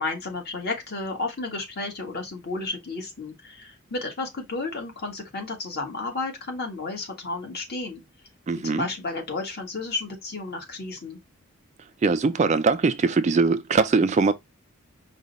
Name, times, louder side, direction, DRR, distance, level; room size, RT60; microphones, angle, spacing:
voice 1, 0.0-8.0 8.6-11.2, left 3 dB, 50° left, 1.5 m, -32 dB
voice 2, 8.5-8.9 12.0-14.3, right 4 dB, 30° right, 0.3 m, -21 dB
5.1 x 2.2 x 3.9 m
head